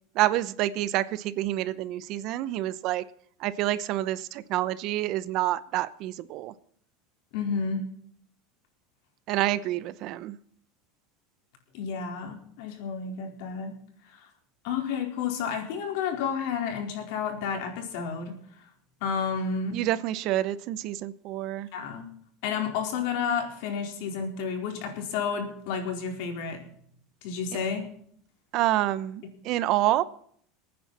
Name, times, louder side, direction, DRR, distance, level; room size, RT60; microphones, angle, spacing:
voice 1, 0.1-3.0 3.4-6.5 9.3-10.4 19.7-21.7 28.5-30.0, right 14 dB, 50° right, 0.8 m, -28 dB
voice 2, 7.3-7.8 11.7-13.7 14.1-14.3 14.6-18.3 19.0-19.8 21.7-22.1 22.4-26.6 27.2-27.9, left 6 dB, 65° left, 4.3 m, -31 dB
23.0 x 9.6 x 4.3 m
supercardioid pair, 140°, 0 cm